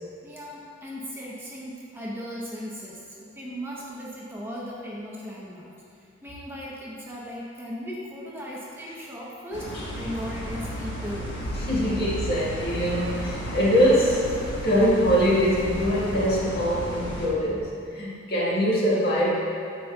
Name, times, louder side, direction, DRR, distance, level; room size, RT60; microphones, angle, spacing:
voice 1, 0.2-5.7 6.2-11.4, equal, 10° right, -5 dB, 0.9 m, -37 dB
sound 1, 9.5-17.3, equal, 80° left, 1.2 m, -33 dB
voice 2, 11.7-14.3 14.6-19.4, equal, 55° left, -6 dB, 1.6 m, -23 dB
9.1 x 7.1 x 2.3 m, 2.5 s
head